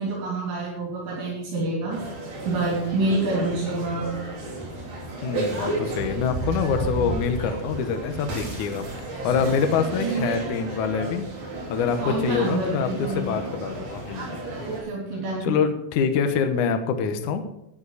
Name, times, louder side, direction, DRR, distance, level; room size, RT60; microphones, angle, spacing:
voice 1, 0.0-2.0 2.5-4.1 9.3-9.4 10.0-10.4 12.0-13.4 14.7-15.6, right 2 dB, 75° right, -3 dB, 5.6 m, -27 dB
sound 1, 1.9-14.8, right 2 dB, 45° right, 4.7 m, -33 dB
voice 2, 5.2-11.3 11.7-14.4 15.4-17.4, left 6 dB, 85° left, 7 dB, 1.7 m, -25 dB
12.5 x 10.5 x 4.9 m, 0.83 s
omnidirectional pair, 5.3 m